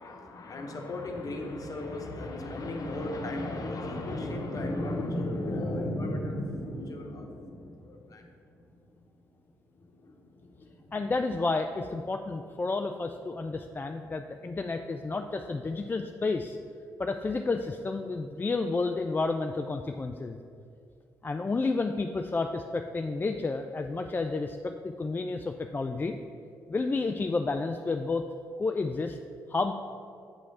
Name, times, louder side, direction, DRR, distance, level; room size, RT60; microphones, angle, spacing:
voice 1, 0.0-9.1 9.7-11.0, left 1 dB, 50° left, 2 dB, 1.0 m, -35 dB
voice 2, 10.9-16.6 17.0-20.4 21.2-26.2 26.7-28.2 28.6-29.2 29.5-29.7, left 3 dB, 25° left, 5 dB, 0.3 m, -31 dB
7.2 x 3.1 x 5.6 m, 2.4 s
supercardioid pair, 55°, 8 cm